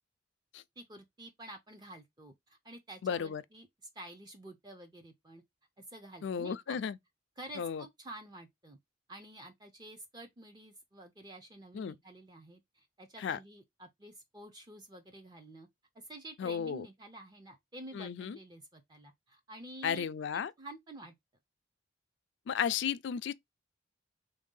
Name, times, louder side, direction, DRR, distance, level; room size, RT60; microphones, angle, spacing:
voice 1, 0.8-3.7 4.0-5.4 5.8-6.8 7.4-8.8 9.1-15.7 16.1-20.1 20.3-21.1, right 1 dB, 20° right, 0.5 m, -50 dB
voice 2, 3.0-3.4 6.2-7.0 7.6-7.8 11.7-11.9 13.2-13.4 16.4-16.9 17.9-18.4 19.8-20.5 22.5-23.3, left 7 dB, 65° left, 0.3 m, -34 dB
3.3 x 2.6 x 3.7 m
head